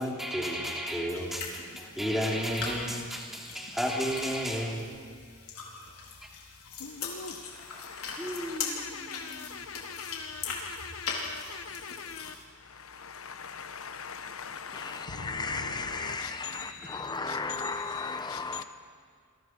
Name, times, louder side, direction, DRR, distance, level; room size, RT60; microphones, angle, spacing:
voice 1, 0.0-4.9 7.4-7.5 8.2-9.8 15.5-15.6 16.0-17.0, equal, ahead, 3.3 m, -33 dB
sound 1, 1.1-12.4, left 5 dB, 90° left, 4.2 m, -41 dB
voice 2, 6.8-17.6 17.9-18.6, left 5 dB, 70° left, 1.2 m, -42 dB
voice 3, 14.7-18.6, left 4 dB, 20° left, 1.0 m, -35 dB
29.0 x 22.5 x 4.7 m
head